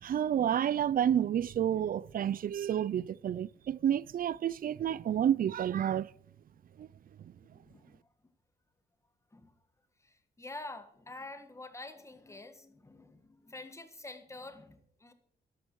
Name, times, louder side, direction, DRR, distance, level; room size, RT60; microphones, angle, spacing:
voice 1, 0.0-6.1 6.8-6.9, right 9 dB, 55° right, 0.4 m, -30 dB
voice 2, 7.5-8.0 9.3-9.5 10.0-15.1, left 2 dB, 15° left, 1.7 m, -47 dB
13.0 x 12.0 x 4.7 m
wide cardioid pair, 115°, 17 cm